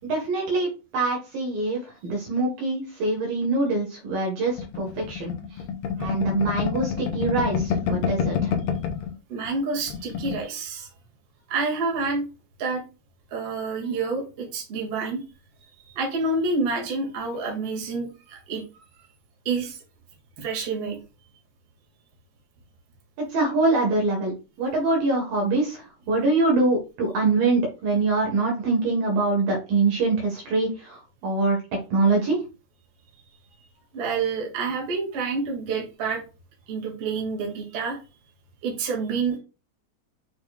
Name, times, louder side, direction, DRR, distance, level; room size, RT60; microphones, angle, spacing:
voice 1, 0.1-5.3 6.0-8.5 23.3-24.3 24.6-31.6 31.9-32.4, right 3 dB, 65° right, -1 dB, 3.2 m, -24 dB
sound 1, 4.6-9.1 9.4-9.6 9.8-10.4, left 7 dB, 75° left, 3.1 m, -27 dB
voice 2, 9.3-10.9 11.5-12.2 12.6-12.8 13.3-15.2 15.9-18.6 18.9-19.1 19.4-19.8 20.4-21.0 33.9-36.2 36.7-38.0 38.6-39.4, right 4 dB, 40° right, -1 dB, 2.9 m, -28 dB
9.0 x 5.6 x 2.4 m, 0.31 s
omnidirectional pair, 4.8 m